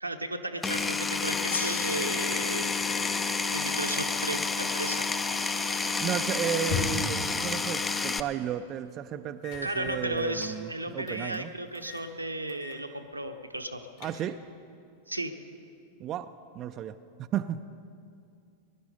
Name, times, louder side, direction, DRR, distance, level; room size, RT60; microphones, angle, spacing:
voice 1, 0.0-2.7 3.5-5.1 9.6-13.8 15.1-15.3, right 1 dB, 85° right, 5 dB, 1.0 m, -34 dB
Power tool, 0.6-8.2, left 4 dB, 15° left, 0.6 m, -29 dB
Gong, 1.4-4.6, left 4 dB, 75° left, 0.4 m, -41 dB
voice 2, 6.0-11.5 14.0-14.4 16.0-17.6, right 10 dB, 35° right, 9 dB, 0.5 m, -34 dB
sound 1, 6.5-7.2 7.9-8.1 8.5-8.6 9.4-10.5 11.1-11.4 11.7-12.1 12.5-12.8 13.1-13.2 13.7-14.5, left 7 dB, 50° left, 2.9 m, -38 dB
21.0 x 11.5 x 5.4 m, 2.5 s
figure-of-eight pair, 90°, 0 cm